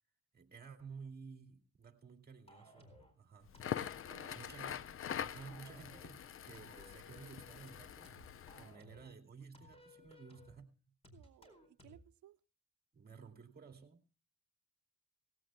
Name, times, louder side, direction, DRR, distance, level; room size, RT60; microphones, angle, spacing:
voice 1, 0.3-3.5 4.3-4.9 5.2-8.2 8.6-10.9 12.9-14.0, right 5 dB, 30° right, 6 dB, 2.5 m, -54 dB
sound 1, 2.5-3.1 3.5-4.6 5.0-6.1 6.5-9.1 9.5-10.6 11.0-12.1, left 1 dB, 20° left, 4.4 m, -60 dB
Crackle, 3.5-8.7, left 9 dB, 45° left, 0.7 m, -44 dB
voice 2, 4.1-4.6 8.5-8.7 11.1-12.4, right 13 dB, 70° right, 13 dB, 0.8 m, -62 dB
18.0 x 17.5 x 2.2 m, 0.34 s
cardioid pair, 90°, 30 cm